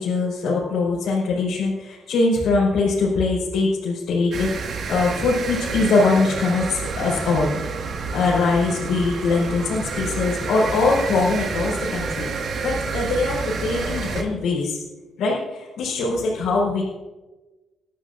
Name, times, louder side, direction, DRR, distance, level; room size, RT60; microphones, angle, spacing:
voice 1, 0.0-7.6 8.1-14.8 15.2-16.8, left 3 dB, 80° left, -7 dB, 4.5 m, -22 dB
sound 1, 4.3-14.2, right 4 dB, 60° right, 1.9 m, -29 dB
22.0 x 12.5 x 2.6 m, 1.2 s
cardioid pair, 90°, 0 cm